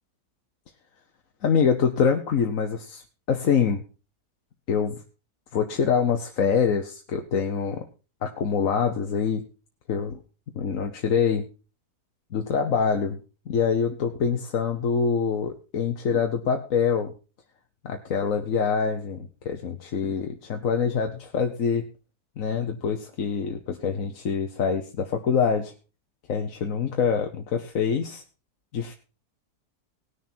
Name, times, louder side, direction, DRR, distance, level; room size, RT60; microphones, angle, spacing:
voice 1, 1.4-3.8 4.7-5.0 5.5-7.8 8.2-9.4 9.9-10.2 10.5-11.5 12.3-13.2 13.5-17.1 17.8-21.8 22.4-25.7 26.3-28.2 28.7-28.9, left 6 dB, 55° left, 4 dB, 1.3 m, -25 dB
19.0 x 6.6 x 4.4 m, 0.34 s
omnidirectional pair, 1.8 m